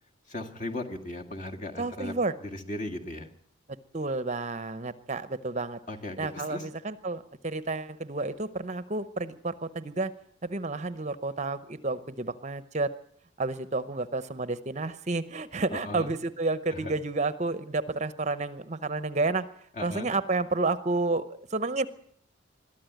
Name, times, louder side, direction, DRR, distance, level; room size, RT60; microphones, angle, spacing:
voice 1, 0.3-2.1 2.4-3.3 5.9-6.6 15.7-16.1 16.7-16.9 19.8-20.1, left 1 dB, 40° left, 3 dB, 2.0 m, -37 dB
voice 2, 1.8-2.4 3.9-5.8 6.2-10.1 10.4-12.9 13.4-19.5 19.8-21.9, right 3 dB, 35° right, 14 dB, 0.8 m, -30 dB
22.0 x 13.5 x 9.2 m, 0.63 s
head